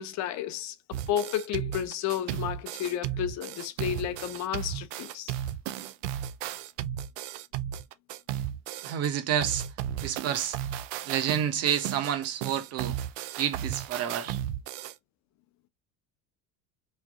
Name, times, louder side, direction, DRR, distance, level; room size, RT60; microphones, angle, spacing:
voice 1, 0.0-5.3, left 10 dB, 50° left, 0.8 m, -32 dB
sound 1, 0.9-9.1 9.4-14.9, right 11 dB, 90° right, 0.5 m, -35 dB
voice 2, 8.8-9.6 10.0-10.6 11.1-12.9 13.4-14.4, right 9 dB, 45° right, 0.8 m, -29 dB
3.2 x 2.5 x 3.6 m
supercardioid pair, 130°, 36 cm